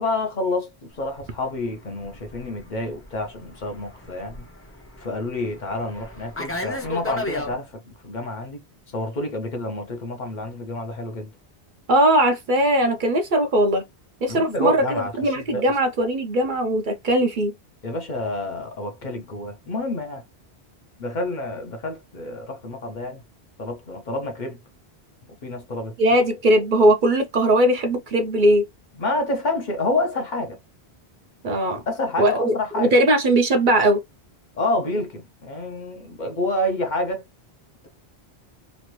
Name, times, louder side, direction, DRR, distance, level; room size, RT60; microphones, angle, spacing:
voice 1, 0.0-4.4 5.0-8.6 8.9-11.3 14.3-15.8 17.8-20.2 21.0-23.2 23.6-24.6 25.4-26.0 29.0-30.6 31.9-32.9 34.5-37.3, left 2 dB, 50° left, 0.7 m, -28 dB
Fixed-wing aircraft airplane, 1.0-7.5, left 2 dB, 15° left, 0.5 m, -35 dB
voice 2, 11.9-13.8 14.2-17.5 26.0-28.7 31.4-31.8 32.2-34.0, right 1 dB, 55° right, 0.7 m, -19 dB
3.1 x 2.4 x 2.9 m
omnidirectional pair, 1.1 m